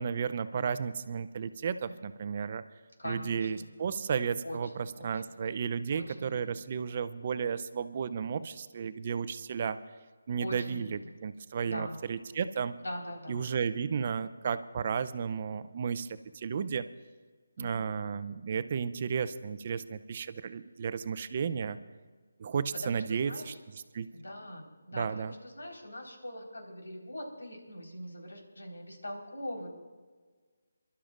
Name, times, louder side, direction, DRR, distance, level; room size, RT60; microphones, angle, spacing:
voice 1, 0.0-2.6 3.0-4.7 5.0-9.8 10.3-12.8 13.3-16.9 17.6-21.8 22.4-23.3 23.9-24.1 25.0-25.3, right 6 dB, 40° right, 13 dB, 0.6 m, -33 dB
voice 2, 3.0-3.6 4.4-5.2 5.9-6.6 10.4-11.1 11.6-12.0 12.8-13.5 17.6-17.9 22.7-23.6 24.1-29.7, left 1 dB, 80° left, 0 dB, 4.3 m, -42 dB
28.0 x 12.5 x 2.5 m, 1.4 s
figure-of-eight pair, 155°, 0 cm